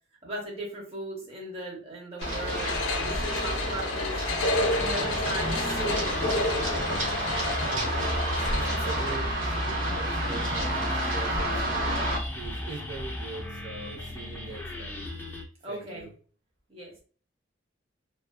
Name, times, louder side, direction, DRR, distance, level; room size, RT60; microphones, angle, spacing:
voice 1, 0.2-4.2 4.7-6.3 15.6-16.1 16.7-17.0, right 1 dB, 30° right, -2 dB, 0.8 m, -37 dB
sound 1, 2.2-9.2, left 2 dB, 85° left, 0.5 m, -30 dB
Run, 2.2-12.2, right 1 dB, 85° right, 1.0 m, -30 dB
sound 2, 4.5-15.4, left 1 dB, 10° left, 0.4 m, -35 dB
voice 2, 7.7-15.1 15.7-16.1, right 3 dB, 60° right, 0 dB, 0.6 m, -42 dB
2.4 x 2.4 x 2.3 m, 0.40 s
head